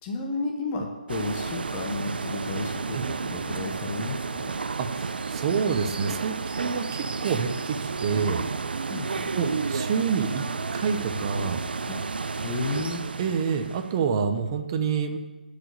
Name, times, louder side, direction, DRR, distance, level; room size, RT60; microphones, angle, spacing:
voice 1, 0.0-4.6 8.9-9.3 11.9-12.0 12.4-13.1, left 3 dB, 20° left, 0 dB, 0.9 m, -32 dB
sound 1, 1.1-14.0, right 4 dB, 75° right, 0.6 m, -31 dB
voice 2, 4.8-8.4 9.3-10.5 10.7-11.6 13.2-15.2, right 6 dB, 25° right, 7 dB, 0.8 m, -27 dB
10.5 x 5.0 x 8.1 m, 1.2 s
hypercardioid pair, 165°, 5 cm